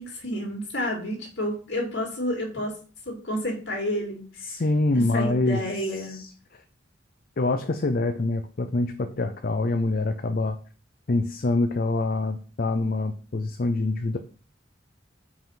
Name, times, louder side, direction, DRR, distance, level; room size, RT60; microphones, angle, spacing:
voice 1, 0.0-2.7 3.1-4.3 5.1-6.2, equal, 70° left, 0 dB, 2.6 m, -30 dB
voice 2, 4.4-5.7 6.0-6.3 7.4-10.6 11.1-14.2, left 2 dB, 55° left, 7 dB, 0.6 m, -25 dB
5.5 x 4.9 x 5.8 m, 0.39 s
head